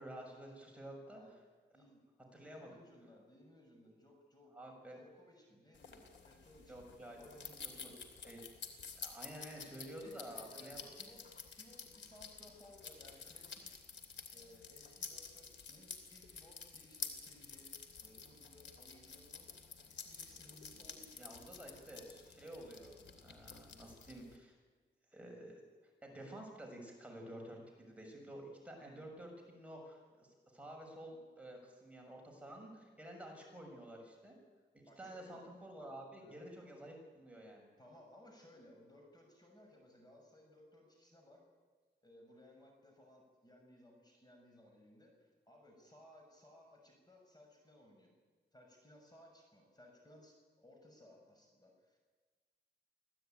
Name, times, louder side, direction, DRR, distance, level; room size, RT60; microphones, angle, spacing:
voice 1, 0.0-1.2 2.3-2.7 4.5-5.0 6.7-7.2 7.6-7.9 8.2-8.4 8.9-10.9 21.2-23.0 23.2-24.5 25.1-25.6 26.0-34.3 34.7-37.7, right 1 dB, 5° right, 0 dB, 6.5 m, -51 dB
voice 2, 1.1-1.4 1.7-2.0 2.5-4.6 4.9-8.0 10.0-13.7 14.3-17.7 18.0-19.5 20.0-21.1 34.9-35.4 36.2-36.4 37.8-41.4 42.0-48.1 48.5-52.0, left 1 dB, 20° left, 1 dB, 6.3 m, -61 dB
sound 1, 5.7-24.4, left 6 dB, 80° left, 3.1 m, -51 dB
25.5 x 16.0 x 9.2 m, 1.4 s
wide cardioid pair, 105°, 19 cm